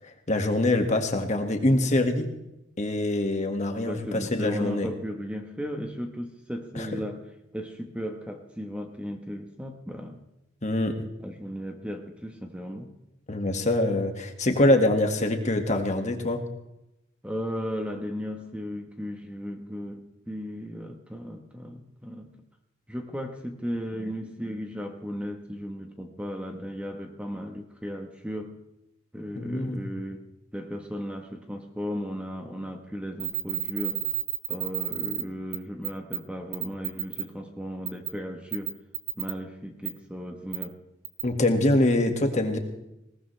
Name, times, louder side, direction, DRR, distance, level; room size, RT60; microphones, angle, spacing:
voice 1, 0.3-2.3 2.8-4.9 6.8-6.9 10.6-10.9 13.3-16.4 29.4-29.9 41.2-42.6, left 1 dB, 35° left, 4 dB, 1.9 m, -24 dB
voice 2, 3.8-7.2 7.5-10.2 11.2-12.9 17.2-22.3 22.9-28.5 29.1-30.3 30.5-34.1 34.5-38.8 39.2-40.8, equal, 5° right, 4 dB, 1.2 m, -35 dB
sound 1, 33.2-35.2 35.5-35.6 35.8-36.2 36.5-37.2 37.9-38.1 38.5-39.3 39.8-39.9 40.5-40.6 41.0-41.2, right 14 dB, 90° right, 2.6 m, -30 dB
20.5 x 19.0 x 3.4 m, 0.89 s
head